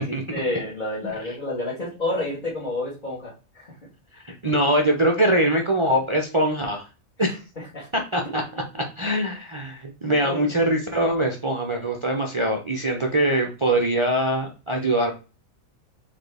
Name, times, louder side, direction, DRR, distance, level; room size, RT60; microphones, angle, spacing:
voice 1, 0.3-3.8 7.6-7.9 8.2-8.4 10.2-10.5, left 1 dB, 35° left, -8 dB, 1.6 m, -30 dB
voice 2, 4.1-6.9 7.2-7.4 8.1-15.1, right 1 dB, 40° right, 1 dB, 0.4 m, -23 dB
4.1 x 3.6 x 3.4 m, 0.32 s
omnidirectional pair, 1.5 m